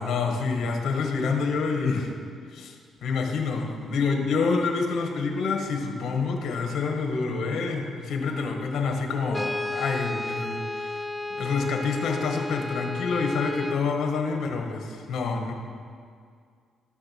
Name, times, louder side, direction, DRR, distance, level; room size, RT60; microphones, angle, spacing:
voice 1, 0.0-2.1 2.5-2.8 3.0-11.0 11.3-15.5, left 4 dB, 70° left, 3 dB, 1.4 m, -27 dB
Brass instrument, 9.3-13.9, left 2 dB, 5° left, 0.4 m, -33 dB
12.5 x 6.7 x 5.9 m, 2.1 s
cardioid pair, 90°, 0 cm